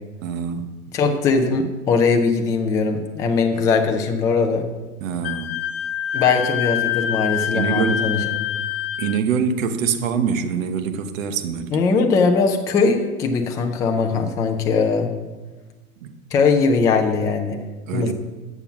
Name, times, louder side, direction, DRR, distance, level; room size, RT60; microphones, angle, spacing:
voice 1, 0.2-0.7 5.0-5.5 7.5-8.0 9.0-11.8 16.0-16.1 17.9-18.1, right 7 dB, 60° right, 9 dB, 1.2 m, -24 dB
voice 2, 0.9-4.7 6.1-8.5 11.7-15.1 16.3-17.6 17.9-18.1, left 4 dB, 10° left, 4 dB, 0.3 m, -20 dB
Wind instrument woodwind instrument, 5.2-9.2, left 11 dB, 40° left, 0.7 m, -25 dB
8.7 x 7.1 x 5.9 m, 1.2 s
hypercardioid pair, 115°, 45 cm